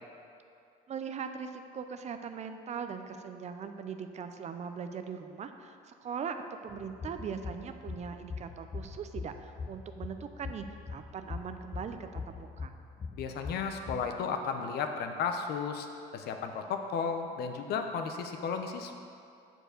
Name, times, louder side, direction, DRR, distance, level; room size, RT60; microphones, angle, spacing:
voice 1, 0.9-12.7, right 6 dB, 40° right, 8 dB, 0.6 m, -40 dB
sound 1, 6.7-14.0, left 4 dB, 30° left, 0.7 m, -42 dB
voice 2, 13.1-15.9 16.1-19.0, left 6 dB, 70° left, 6 dB, 0.8 m, -34 dB
7.7 x 4.6 x 6.5 m, 2.5 s
cardioid pair, 110°, 17 cm